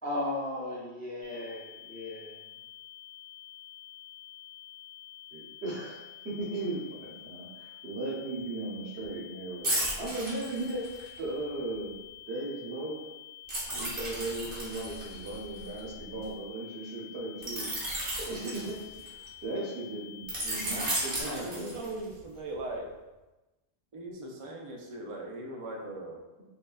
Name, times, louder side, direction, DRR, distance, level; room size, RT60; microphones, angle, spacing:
voice 1, 0.0-2.4, left 1 dB, 10° left, -5 dB, 0.4 m, -36 dB
sound 1, 1.2-21.2, left 13 dB, 75° left, 1.0 m, -49 dB
voice 2, 5.3-10.9 11.2-11.9 12.3-13.0 13.7-17.7 18.2-21.8, right 2 dB, 85° right, -3 dB, 1.1 m, -37 dB
sound 2, 9.6-11.2 13.5-16.2 17.4-19.3 20.3-22.1 22.6-22.8, right 1 dB, 60° right, 1.4 m, -34 dB
voice 3, 21.2-22.9 23.9-26.2, right 1 dB, 40° right, 0 dB, 0.5 m, -40 dB
5.1 x 2.3 x 2.4 m, 1.1 s
omnidirectional pair, 1.1 m